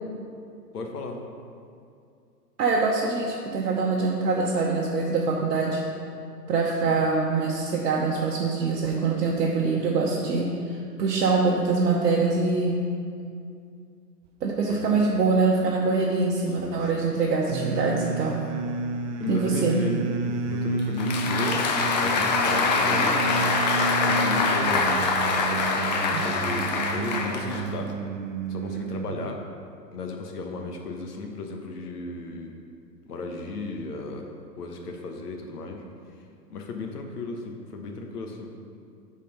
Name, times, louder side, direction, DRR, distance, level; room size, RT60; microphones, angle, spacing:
voice 1, 0.7-1.2 6.8-7.0 14.7-15.2 16.6-17.1 19.2-23.5 24.1-24.9 25.4-27.9 28.5-29.4 29.9-32.5 33.1-34.3 34.6-35.8 36.5-38.5, left 3 dB, 65° left, 3 dB, 1.2 m, -35 dB
voice 2, 2.6-5.8 6.5-12.9 14.4-18.5 19.3-19.8, right 4 dB, 70° right, -2 dB, 1.0 m, -24 dB
sound 1, 17.5-29.4, right 4 dB, 50° right, 0.5 m, -31 dB
Applause, 20.8-27.9, left 4 dB, 30° left, 0.5 m, -24 dB
8.4 x 4.2 x 5.4 m, 2.4 s
figure-of-eight pair, 115°, 49 cm